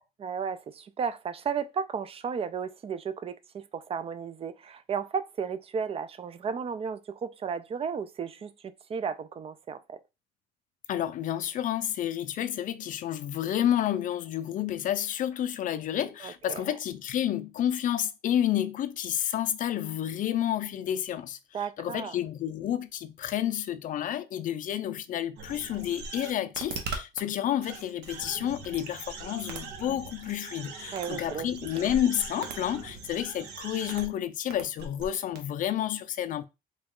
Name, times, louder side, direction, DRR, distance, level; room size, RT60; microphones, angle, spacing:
voice 1, 0.2-10.0 16.2-16.6 21.5-22.2 30.9-31.5, right 6 dB, 35° right, 0.4 m, -34 dB
voice 2, 10.9-36.4, left 11 dB, 50° left, 0.4 m, -30 dB
sound 1, 25.4-27.2 27.6-34.1 34.5-35.1 35.4-35.5, right 4 dB, 85° right, 0.9 m, -40 dB
3.9 x 2.3 x 3.6 m
cardioid pair, 110°, 17 cm